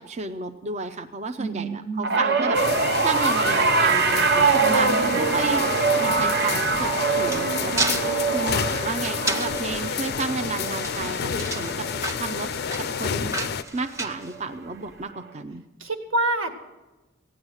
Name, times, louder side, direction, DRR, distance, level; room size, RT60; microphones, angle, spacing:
voice 1, 0.0-2.6 3.0-4.9 5.2-6.9 7.2-7.9 8.3-11.9 12.2-12.5 12.8-13.3 13.7-15.6, right 3 dB, 35° right, 6 dB, 0.5 m, -32 dB
voice 2, 1.4-2.1 4.6-5.2 15.8-16.5, right 2 dB, 85° right, 5 dB, 1.8 m, -28 dB
sound 1, 2.0-12.5 12.8-13.2 14.3-14.4, right 4 dB, 55° right, 0.9 m, -24 dB
sound 2, 2.5-13.6, left 7 dB, 50° left, 0.4 m, -30 dB
sound 3, 6.7-14.9, right 2 dB, 15° right, 1.0 m, -33 dB
15.5 x 9.7 x 6.3 m, 1.1 s
head